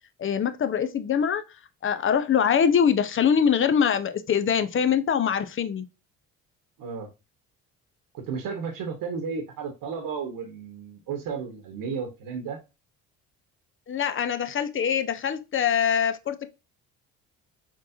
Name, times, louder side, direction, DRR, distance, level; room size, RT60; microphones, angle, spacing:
voice 1, 0.2-1.4 1.8-5.8 13.9-16.5, left 7 dB, 35° left, 0.6 m, -23 dB
voice 2, 6.8-7.1 8.1-12.6, right 5 dB, 65° right, 1.1 m, -33 dB
4.3 x 3.1 x 2.5 m
hypercardioid pair, 60°, 37 cm